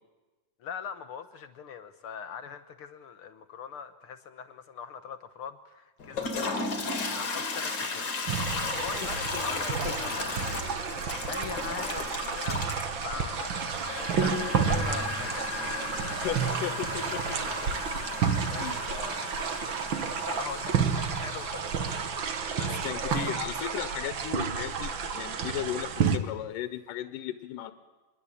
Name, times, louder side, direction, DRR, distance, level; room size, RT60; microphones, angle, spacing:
voice 1, 0.6-8.4 8.7-15.8 16.4-17.1 18.2-19.5 20.2-22.1 22.5-23.4, left 7 dB, 70° left, 10 dB, 1.3 m, -42 dB
Toilet flush, 6.0-22.7, left 4 dB, 35° left, 2.8 m, -36 dB
sound 1, 8.3-26.2, right 6 dB, 50° right, 1.7 m, -31 dB
voice 2, 9.3-10.1 16.2-17.7 18.6-18.8 22.6-27.7, left 12 dB, 90° left, 11 dB, 2.6 m, -36 dB
25.5 x 21.5 x 8.5 m, 1.2 s
omnidirectional pair, 3.7 m